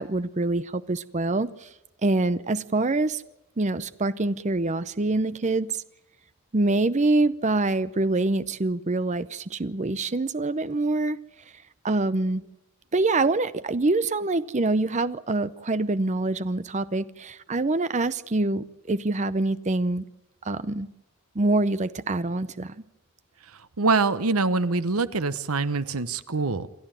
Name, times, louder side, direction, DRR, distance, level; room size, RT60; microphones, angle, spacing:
voice 1, 0.0-1.7 2.0-3.2 3.6-5.8 6.5-11.2 11.8-12.4 12.9-20.0 20.4-20.9 21.3-22.8, right 2 dB, 30° right, 14 dB, 0.6 m, -25 dB
voice 2, 23.5-26.7, right 3 dB, 75° right, 13 dB, 1.0 m, -25 dB
28.0 x 12.0 x 9.0 m, 0.94 s
head